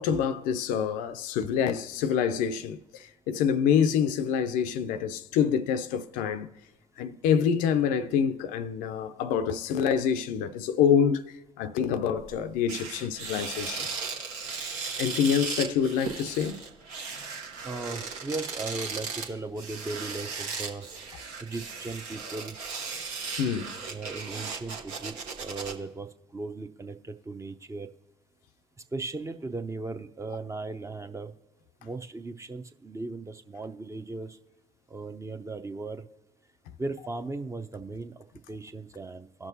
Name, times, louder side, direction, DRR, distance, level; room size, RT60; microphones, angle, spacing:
voice 1, 0.0-6.5 7.0-11.2 11.6-13.9 15.0-16.6 23.4-23.7, left 7 dB, 70° left, 0.5 m, -26 dB
sound 1, 12.2-12.3 12.7-25.7, right 5 dB, 75° right, 1.1 m, -36 dB
voice 2, 17.6-20.9 21.4-22.5 23.9-26.1 26.3-27.9 28.9-31.3 31.8-34.4 34.9-36.0 36.8-39.5, right 3 dB, 20° right, 0.6 m, -37 dB
18.0 x 6.1 x 2.7 m
hypercardioid pair, 60°, 14 cm